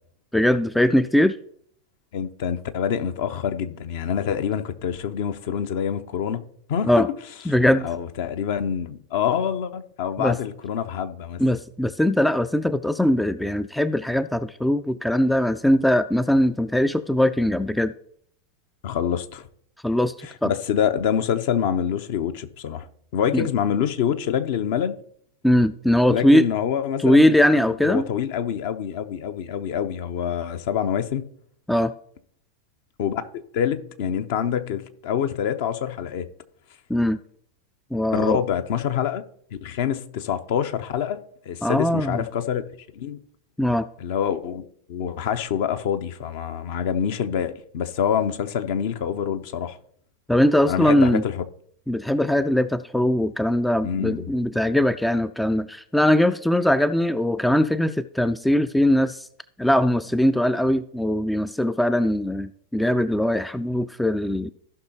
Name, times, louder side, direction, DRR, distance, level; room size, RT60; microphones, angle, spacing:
voice 1, 0.3-1.4 6.8-7.1 7.5-7.9 10.2-10.4 11.4-17.9 19.8-20.1 20.4-20.5 23.3-23.5 25.4-26.5 27.0-28.1 31.7-31.9 36.9-37.2 37.9-38.4 41.6-42.2 43.6-43.9 50.3-51.2 51.9-59.3 59.6-64.5, left 1 dB, 5° left, 0.3 m, -20 dB
voice 2, 2.1-6.9 7.8-11.4 18.8-19.5 20.2-22.9 23.1-25.0 26.1-31.3 33.0-33.2 33.5-36.3 38.1-39.2 39.5-42.6 42.9-43.2 44.0-49.8 50.7-51.4 53.8-54.3, left 8 dB, 50° left, 0.7 m, -26 dB
15.5 x 5.7 x 2.9 m
figure-of-eight pair, 90°, 0 cm